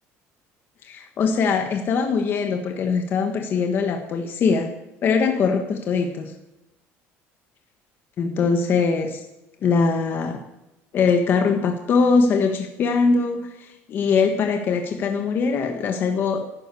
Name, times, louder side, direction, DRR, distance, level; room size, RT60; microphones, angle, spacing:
voice 1, 0.8-4.7 5.0-6.3 8.2-9.2 9.6-10.4 10.9-16.4, left 5 dB, 40° left, 5 dB, 1.5 m, -22 dB
14.5 x 12.0 x 6.9 m, 0.92 s
cardioid pair, 145°, 5 cm